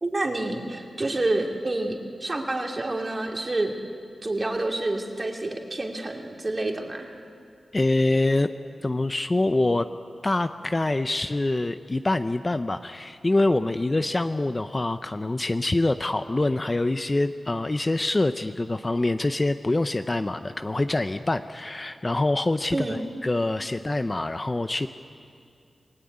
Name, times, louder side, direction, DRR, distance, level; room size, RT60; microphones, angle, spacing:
voice 1, 0.0-3.7 4.2-7.1 22.7-23.0, right 2 dB, 30° right, 2 dB, 2.6 m, -28 dB
voice 2, 7.7-8.5 8.8-9.9 10.2-24.9, left 2 dB, 25° left, 10 dB, 0.6 m, -25 dB
26.5 x 19.0 x 9.5 m, 2.3 s
wide cardioid pair, 105°, 0 cm